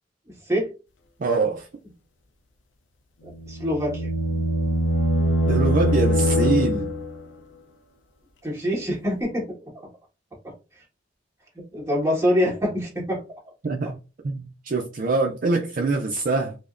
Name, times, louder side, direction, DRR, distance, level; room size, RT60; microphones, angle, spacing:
voice 1, 1.2-1.7 5.5-6.9 13.6-14.0 14.2-16.6, right 3 dB, 50° right, 0.4 m, -24 dB
voice 2, 3.2-4.1 8.4-9.5 10.4-10.5 11.7-13.2, equal, 15° right, 1.7 m, -25 dB
sound 1, 3.3-7.2, equal, 90° left, 0.5 m, -23 dB
4.9 x 2.1 x 2.5 m
head